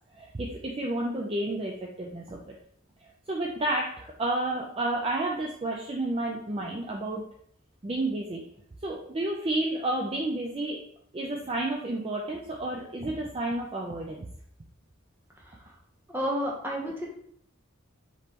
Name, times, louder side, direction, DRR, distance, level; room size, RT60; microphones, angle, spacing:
voice 1, 0.1-2.6 3.0-7.2 7.8-8.4 8.8-10.8 11.1-14.3 16.8-16.9, right 2 dB, 30° right, -1 dB, 0.4 m, -31 dB
voice 2, 15.4-15.7 16.1-17.1, equal, 10° right, -3 dB, 0.9 m, -32 dB
5.2 x 3.2 x 2.9 m, 0.66 s
head